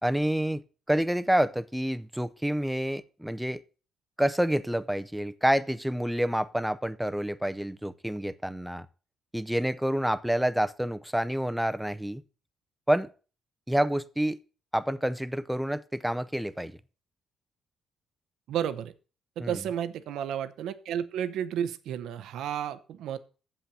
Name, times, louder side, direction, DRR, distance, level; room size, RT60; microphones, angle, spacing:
voice 1, 0.0-0.6 0.9-3.6 4.2-8.9 9.3-12.2 12.9-13.1 13.7-14.4 14.7-16.8 19.4-19.6, right 1 dB, 5° right, 0.6 m, -28 dB
voice 2, 18.5-18.9 19.4-23.2, right 9 dB, 80° right, 0.7 m, -32 dB
7.5 x 5.8 x 6.7 m
cardioid pair, 90°, 0 cm